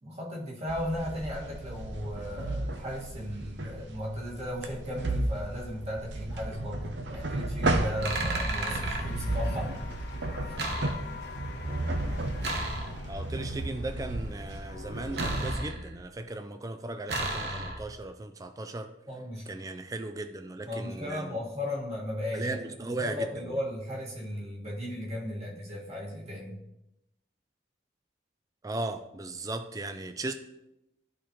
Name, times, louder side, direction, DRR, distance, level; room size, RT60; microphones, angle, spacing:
voice 1, 0.0-9.8 10.4-10.6 19.1-19.5 20.7-26.6, left 1 dB, 35° right, -4 dB, 1.9 m, -36 dB
sound 1, 0.7-15.5, right 2 dB, 85° right, 0.7 m, -34 dB
sound 2, 8.0-9.1 10.6-11.4 12.4-13.3 15.2-16.1 17.1-18.0, right 2 dB, 70° right, 1.1 m, -34 dB
sound 3, 8.8-15.3, left 4 dB, 65° left, 0.8 m, -45 dB
voice 2, 13.1-18.9 19.5-21.4 22.3-23.6 28.6-30.3, right 2 dB, 20° right, 8 dB, 0.4 m, -37 dB
12.0 x 4.3 x 3.1 m, 0.88 s
head